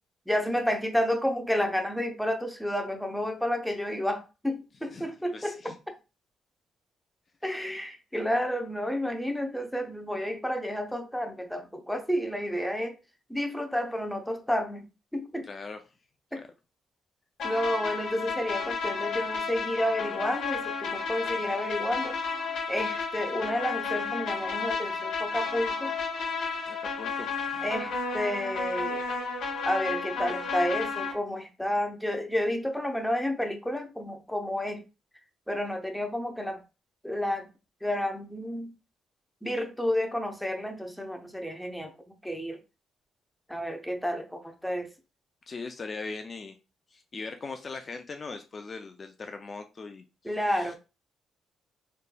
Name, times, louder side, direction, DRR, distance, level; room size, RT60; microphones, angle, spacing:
voice 1, 0.3-5.9 7.4-12.9 13.3-14.9 15.1-15.5 16.3-16.4 17.4-22.1 22.7-26.0 27.6-29.1 29.6-34.8 35.5-36.6 37.0-37.5 37.8-38.7 39.4-41.9 42.2-42.6 43.5-44.9 50.2-50.8, equal, 5° left, 0.7 m, -30 dB
voice 2, 4.9-5.8 15.5-15.8 16.4-16.5 26.7-27.7 45.5-46.6 46.9-50.7, left 4 dB, 40° left, 0.4 m, -40 dB
sound 1, 17.4-31.1, left 4 dB, 75° left, 2.0 m, -32 dB
4.2 x 3.2 x 2.2 m
cardioid pair, 90°, 0 cm